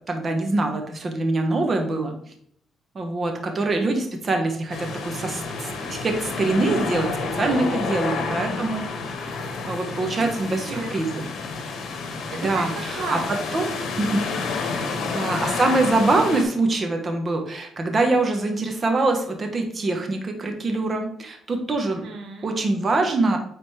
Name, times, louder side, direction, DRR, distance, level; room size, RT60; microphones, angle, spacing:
voice 1, 0.1-2.1 2.9-8.8 9.2-9.4 9.6-11.3 12.4-13.2 13.5-13.7 14.0-14.2 15.1-22.0 22.4-23.4, right 2 dB, 35° right, 4 dB, 1.5 m, -24 dB
sound 1, 4.7-16.4, left 4 dB, 70° left, 1.2 m, -29 dB
voice 2, 7.7-8.4 9.9-11.2 12.3-13.9 14.5-15.1 21.9-22.5, right 4 dB, 75° right, 1 dB, 1.4 m, -37 dB
8.5 x 4.2 x 3.5 m, 0.65 s
cardioid pair, 90°, 0 cm